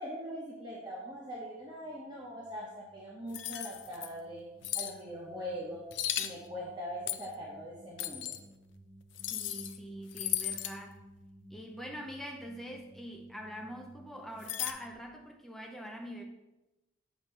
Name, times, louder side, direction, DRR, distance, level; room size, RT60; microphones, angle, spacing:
voice 1, 0.0-4.5 4.7-5.8 6.2-8.3, equal, 25° right, -6 dB, 0.9 m, -42 dB
sound 1, 0.8-14.9, right 1 dB, 80° right, 2.1 m, -58 dB
sound 2, 3.3-4.1 4.6-4.9 5.9-6.3 7.1-7.3 8.0-8.4 9.2-9.8 10.1-10.8 14.4-14.7, left 12 dB, 70° left, 0.4 m, -35 dB
voice 2, 9.3-11.0 11.5-16.2, equal, ahead, 2 dB, 0.6 m, -44 dB
7.2 x 2.9 x 5.4 m, 0.98 s
head